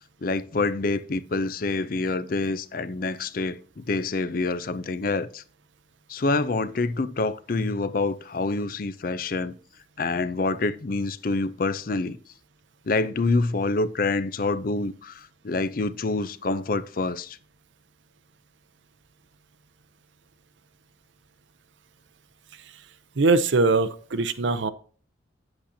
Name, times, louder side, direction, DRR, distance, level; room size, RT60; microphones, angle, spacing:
voice 1, 0.2-5.4 6.1-9.6 10.0-12.2 12.9-17.4, left 3 dB, 45° left, 0.5 m, -27 dB
voice 2, 23.2-24.7, right 3 dB, 75° right, 0.6 m, -21 dB
8.5 x 7.9 x 2.7 m
head